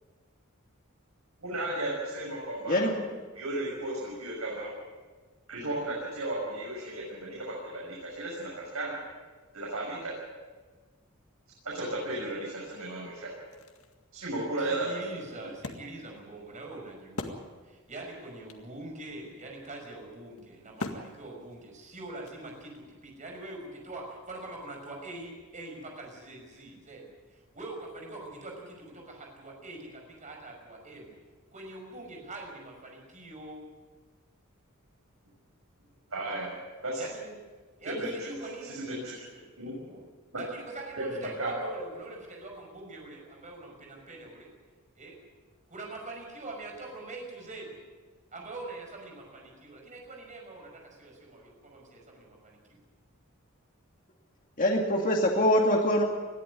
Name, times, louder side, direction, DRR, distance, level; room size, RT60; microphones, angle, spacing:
voice 1, 1.4-2.9 3.3-4.7 5.5-8.9 9.5-10.1 11.7-13.3 14.1-15.0 36.1-36.5 36.8-37.0 37.8-38.3 38.7-39.1 39.6-39.7 41.0-41.1 41.4-41.7, right 1 dB, 85° right, -4 dB, 6.4 m, -34 dB
Wood, 13.5-17.9 18.2-18.3 18.5-22.9, left 2 dB, 90° left, 2.1 m, -43 dB
voice 2, 14.6-31.2 31.5-33.6 37.0-37.4 37.8-39.0 39.3-39.5 39.8-40.1 40.3-44.5 45.0-45.2 45.7-47.8 48.3-52.6, right 2 dB, 35° right, 1 dB, 5.7 m, -44 dB
voice 3, 54.6-56.0, left 1 dB, 40° left, 0 dB, 2.2 m, -23 dB
21.0 x 14.0 x 9.8 m, 1.4 s
head